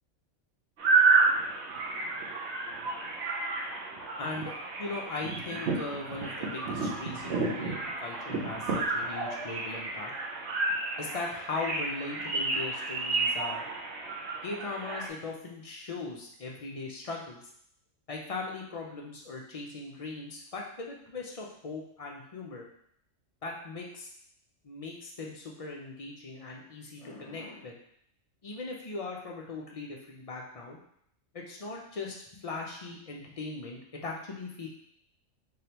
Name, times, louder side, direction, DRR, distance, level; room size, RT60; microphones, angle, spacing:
sound 1, 0.8-15.1, right 3 dB, 60° right, 0.9 m, -30 dB
voice 1, 4.2-10.1 11.0-13.7 14.4-17.4 18.1-22.6 23.4-24.1 24.6-27.8 28.4-30.8 31.3-34.7, left 3 dB, 50° left, -1 dB, 0.4 m, -39 dB
3.8 x 3.4 x 2.9 m, 0.69 s
omnidirectional pair, 1.3 m